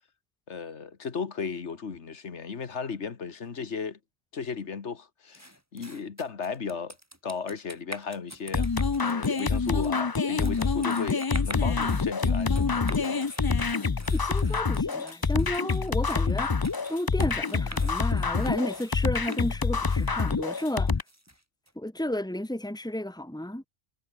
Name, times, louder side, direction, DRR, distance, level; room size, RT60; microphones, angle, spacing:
voice 1, 0.5-4.0 4.3-7.0 7.2-8.7 9.0-13.2, left 5 dB, 75° left, 1.8 m, -35 dB
sound 1, 5.3-21.7, right 1 dB, 15° right, 3.3 m, -46 dB
sound 2, 8.5-21.0, left 4 dB, 30° left, 0.4 m, -26 dB
voice 2, 14.1-16.5 16.9-20.9 21.8-23.6, left 1 dB, 5° left, 2.7 m, -32 dB
omnidirectional pair, 1.2 m